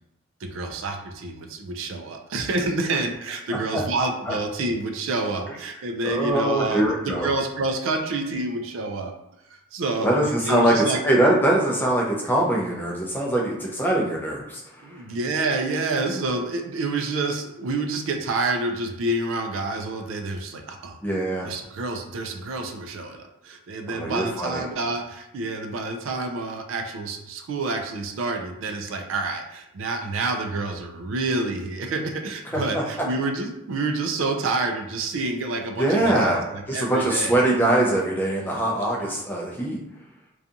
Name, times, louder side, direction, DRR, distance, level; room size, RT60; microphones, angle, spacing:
voice 1, 0.4-9.1 9.7-11.0 14.8-21.0 21.4-37.4 39.0-39.1, right 3 dB, 65° right, 4 dB, 0.3 m, -28 dB
voice 2, 6.0-7.3 10.0-15.0 21.0-21.5 23.9-24.6 32.5-32.6 35.8-39.8, right 1 dB, 10° left, -3 dB, 0.4 m, -23 dB
2.7 x 2.3 x 2.5 m, 0.85 s
head